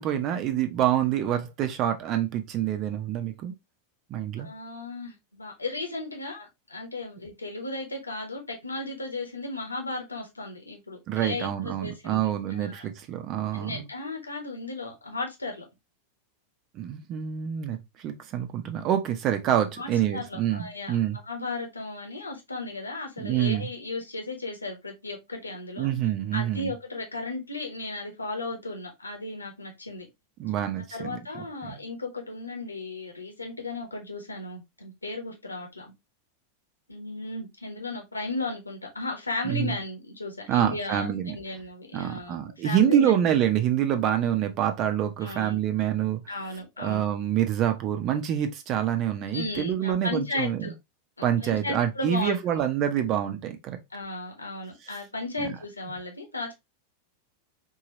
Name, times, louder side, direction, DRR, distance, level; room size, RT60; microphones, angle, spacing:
voice 1, 0.0-3.5 4.1-4.5 11.1-13.9 16.7-21.2 23.2-23.7 25.8-26.7 30.4-31.2 31.6-31.8 39.4-39.8 40.5-41.4 41.9-46.2 46.8-50.7 51.2-53.8 55.4-55.5, right 10 dB, 35° right, 0.8 m, -26 dB
voice 2, 4.4-12.2 12.5-12.9 13.5-15.6 19.8-21.0 21.2-25.9 26.3-30.1 30.9-35.9 36.9-42.4 42.6-43.1 45.2-45.6 46.3-47.0 49.3-50.7 51.2-52.7 53.9-56.5, left 2 dB, 80° left, 1.6 m, -35 dB
4.6 x 3.0 x 3.0 m
figure-of-eight pair, 90°, 0 cm